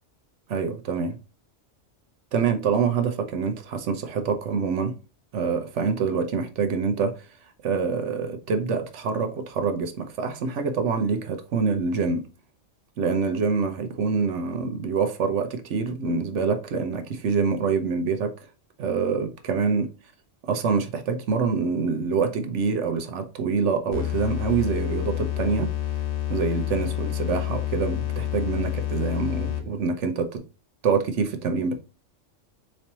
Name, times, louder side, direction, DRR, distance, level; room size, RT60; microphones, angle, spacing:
voice 1, 0.5-1.2 2.3-4.9 5.3-7.3 7.6-12.2 13.0-18.3 18.8-19.9 20.4-25.7 26.3-30.4 30.8-31.8, right 5 dB, 75° right, 1.0 m, -26 dB
sound 1, 23.9-29.8, left 12 dB, 55° left, 0.9 m, -28 dB
4.3 x 3.1 x 2.8 m
omnidirectional pair, 1.3 m